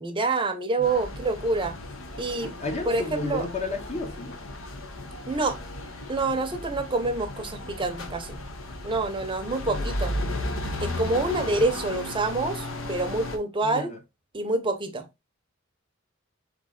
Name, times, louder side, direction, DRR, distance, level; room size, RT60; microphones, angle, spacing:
voice 1, 0.0-1.7 2.2-2.5 2.9-3.4 5.3-5.6 6.1-8.4 8.8-10.1 10.8-13.9 14.3-15.1, right 3 dB, 25° right, 0.7 m, -27 dB
sound 1, 0.8-13.4, left 1 dB, 75° left, 0.9 m, -35 dB
voice 2, 2.4-4.4 9.6-10.0 11.3-11.7 13.6-14.0, left 2 dB, 35° left, 0.9 m, -33 dB
4.1 x 3.2 x 3.7 m
head